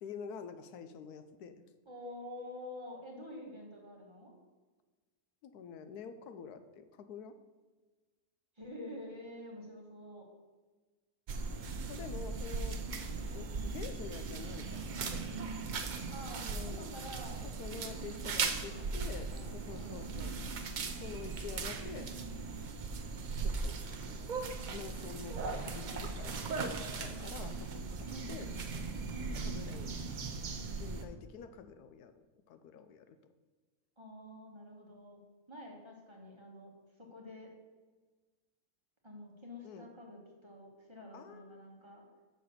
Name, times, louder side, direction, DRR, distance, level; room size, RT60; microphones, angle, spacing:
voice 1, 0.0-1.6 5.4-7.4 11.9-12.8 13.3-15.0 16.4-16.9 17.6-20.3 21.0-22.1 23.4-23.8 24.1-24.3 24.7-27.8 28.3-28.5 29.4-30.0 30.8-32.1 32.5-33.2 39.6-39.9 41.1-41.6, left 6 dB, 80° left, 9 dB, 1.1 m, -47 dB
voice 2, 1.9-4.3 8.6-10.3 16.1-17.4 18.8-19.0 19.3-20.1 28.0-28.5 29.1-29.6 34.0-35.2 35.5-36.7 37.0-37.5 39.0-42.0, left 1 dB, 20° right, -1 dB, 1.1 m, -48 dB
sound 1, 11.3-31.0, right 4 dB, 85° right, 0.4 m, -38 dB
6.8 x 4.2 x 6.3 m, 1.3 s
omnidirectional pair, 1.6 m